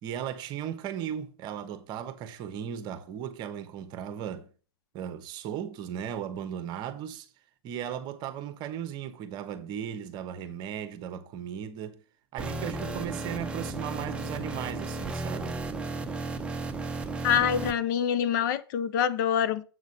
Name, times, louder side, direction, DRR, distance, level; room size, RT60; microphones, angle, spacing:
voice 1, 0.0-4.5 4.9-7.3 7.6-12.0 12.3-15.6, right 9 dB, 35° right, 1.1 m, -36 dB
sound 1, 12.4-17.7, right 2 dB, 10° right, 0.9 m, -34 dB
voice 2, 17.2-19.6, left 8 dB, 50° left, 0.7 m, -25 dB
7.8 x 4.0 x 6.3 m
hypercardioid pair, 120°, 13 cm